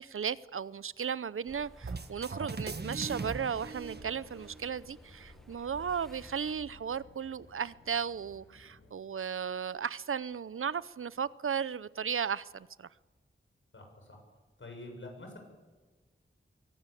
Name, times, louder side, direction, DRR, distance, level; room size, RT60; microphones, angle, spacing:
voice 1, 0.0-12.9, right 7 dB, 80° right, 0.6 m, -35 dB
sound 1, 1.5-6.5, equal, ahead, 1.1 m, -55 dB
sound 2, 1.8-4.7, right 4 dB, 50° right, 1.5 m, -39 dB
Race car auto racing, 3.4-8.9, left 3 dB, 90° left, 6.7 m, -57 dB
voice 2, 13.7-14.2 14.6-15.4, left 2 dB, 65° left, 7.2 m, -46 dB
23.5 x 17.0 x 8.5 m
wide cardioid pair, 85°, 21 cm